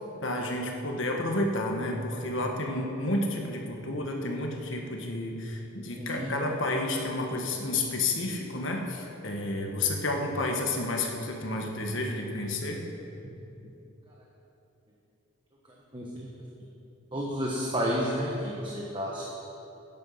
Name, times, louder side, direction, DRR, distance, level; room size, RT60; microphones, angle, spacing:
voice 1, 0.2-12.8, left 2 dB, 60° left, 1 dB, 1.6 m, -30 dB
voice 2, 6.0-6.4 15.9-16.3 17.1-19.3, equal, 25° right, -3 dB, 1.2 m, -31 dB
13.0 x 9.9 x 5.7 m, 2.9 s
head